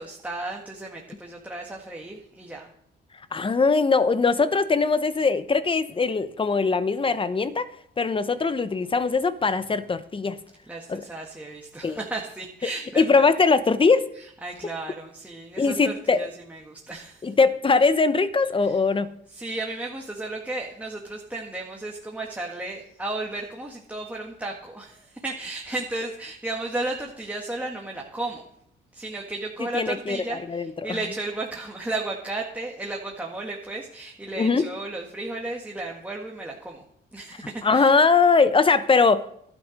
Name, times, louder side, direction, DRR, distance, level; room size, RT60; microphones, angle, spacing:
voice 1, 0.0-2.7 10.7-13.1 14.2-17.3 18.6-18.8 19.3-28.5 28.9-36.8 37.1-37.9, right 2 dB, 10° right, -1 dB, 1.8 m, -34 dB
voice 2, 3.3-7.7 8.0-10.4 10.9-11.0 11.8-12.0 13.0-14.1 15.6-16.3 17.2-19.1 29.7-31.0 34.4-34.7 37.6-39.2, left 4 dB, 25° left, 13 dB, 0.9 m, -21 dB
12.0 x 9.4 x 5.2 m, 0.70 s
cardioid pair, 90°, 20 cm